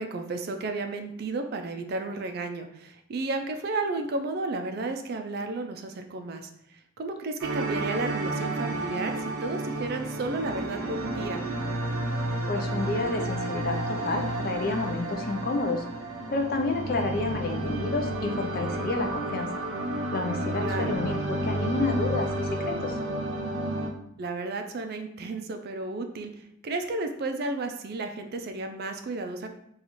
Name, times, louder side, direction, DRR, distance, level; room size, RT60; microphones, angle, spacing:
voice 1, 0.0-6.5 7.0-9.1 9.4-11.4 20.6-21.0 24.2-26.3 26.6-29.5, right 3 dB, 45° right, 6 dB, 0.3 m, -32 dB
sound 1, 7.4-23.9, right 1 dB, 90° right, 0.6 m, -31 dB
voice 2, 12.5-15.8 16.3-19.5 20.1-22.9, left 3 dB, 45° left, 4 dB, 0.4 m, -30 dB
2.9 x 2.4 x 4.0 m, 0.75 s
head